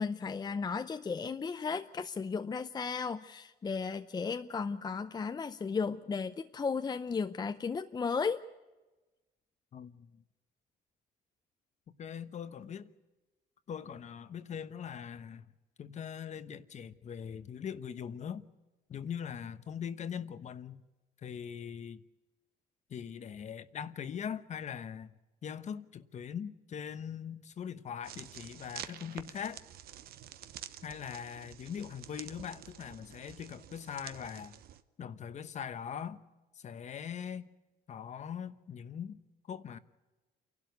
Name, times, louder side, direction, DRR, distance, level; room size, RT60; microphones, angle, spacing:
voice 1, 0.0-8.5, left 5 dB, 25° left, 0.6 m, -35 dB
voice 2, 9.7-10.2 12.0-12.9 13.7-15.5 15.8-18.5 18.9-20.8 21.2-22.0 22.9-25.1 25.4-29.6 30.8-34.6 35.0-36.2 36.5-37.5 37.9-39.2 39.5-39.8, left 8 dB, 45° left, 1.0 m, -41 dB
sound 1, 28.0-34.8, right 11 dB, 65° right, 1.0 m, -49 dB
28.5 x 12.0 x 8.1 m
cardioid pair, 110°, 17 cm